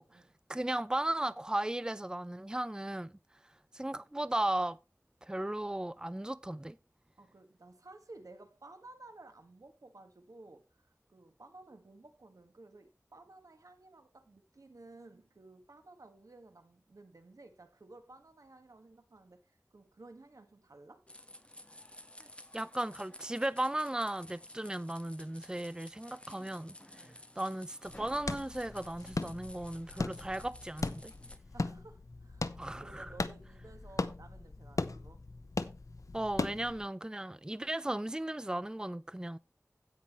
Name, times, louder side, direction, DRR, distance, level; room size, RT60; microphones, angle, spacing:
voice 1, 0.5-3.1 3.7-4.8 5.2-6.8 22.5-27.1 27.4-31.1 32.6-33.1 36.1-39.4, right 1 dB, 15° right, 0.5 m, -36 dB
voice 2, 7.2-21.1 26.9-27.2 31.5-35.2 36.7-36.8, right 2 dB, 90° right, 1.8 m, -55 dB
sound 1, 21.1-31.4, left 1 dB, 20° left, 1.4 m, -53 dB
sound 2, 27.8-36.9, left 3 dB, 80° left, 0.9 m, -39 dB
16.5 x 5.8 x 3.1 m
wide cardioid pair, 50°, 6 cm